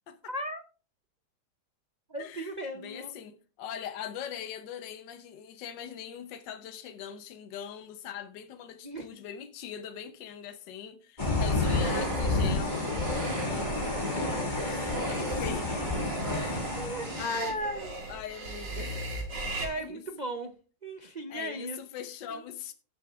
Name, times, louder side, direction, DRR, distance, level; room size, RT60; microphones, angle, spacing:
voice 1, 0.3-0.6 2.1-3.1 8.8-9.1 14.9-15.1 16.8-17.9 19.6-20.5 20.8-21.8 22.3-22.4, right 1 dB, 50° right, 0.5 m, -36 dB
voice 2, 2.2-12.9 14.6-15.7 16.3-16.6 17.2-17.6 18.1-19.0 19.7-20.0 21.3-22.7, left 8 dB, 75° left, 1.5 m, -41 dB
sound 1, 11.2-17.2, left 2 dB, 25° left, 2.3 m, -30 dB
sound 2, 11.6-19.7, right 2 dB, 70° right, 2.9 m, -37 dB
18.0 x 7.1 x 2.4 m
omnidirectional pair, 2.0 m